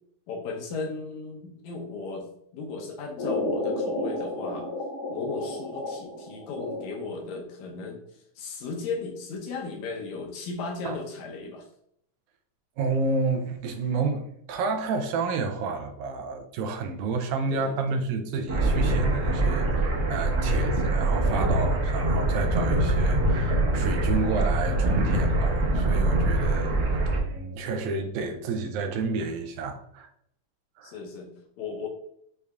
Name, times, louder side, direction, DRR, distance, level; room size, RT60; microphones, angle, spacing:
voice 1, 0.3-4.7 5.1-11.7 17.5-18.0 30.8-31.9, left 4 dB, 75° left, 1.9 m, -36 dB
sound 1, 3.2-7.2, left 2 dB, 60° left, 1.5 m, -32 dB
voice 2, 12.8-30.1 30.8-30.9, right 4 dB, 80° right, 1.9 m, -30 dB
sound 2, 18.5-27.2, right 2 dB, 60° right, 1.2 m, -24 dB
6.5 x 2.7 x 2.3 m
omnidirectional pair, 3.7 m